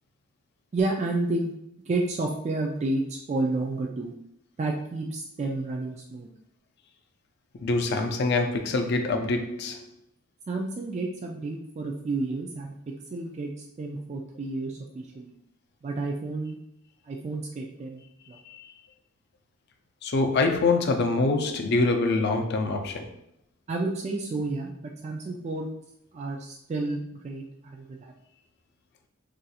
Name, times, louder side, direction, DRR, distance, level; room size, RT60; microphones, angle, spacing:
voice 1, 0.7-1.5 1.9-4.1 4.6-6.3 10.5-12.8 13.1-13.5 13.8-15.3 15.8-16.6 17.0-18.0 18.3-18.4 23.7-24.7 25.0-25.7 26.1-28.1, right 2 dB, 35° right, 0 dB, 0.3 m, -30 dB
voice 2, 7.6-9.8 18.5-18.7 20.0-23.1, left 3 dB, 55° left, 5 dB, 0.4 m, -25 dB
2.5 x 2.3 x 4.1 m, 0.77 s
head